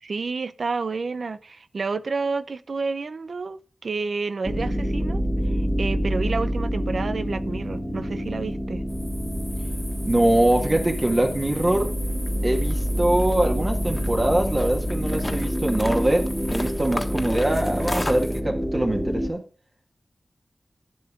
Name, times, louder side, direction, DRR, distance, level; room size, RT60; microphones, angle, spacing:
voice 1, 0.0-8.8 17.3-17.7, right 4 dB, 65° right, 0.7 m, -30 dB
sound 1, 4.4-19.3, equal, 5° right, 2.0 m, -27 dB
sound 2, 8.9-18.4, left 1 dB, 25° left, 1.6 m, -36 dB
voice 2, 10.0-11.9 12.4-19.4, right 1 dB, 30° right, 1.9 m, -23 dB
11.5 x 8.7 x 3.7 m
wide cardioid pair, 75°, 0 cm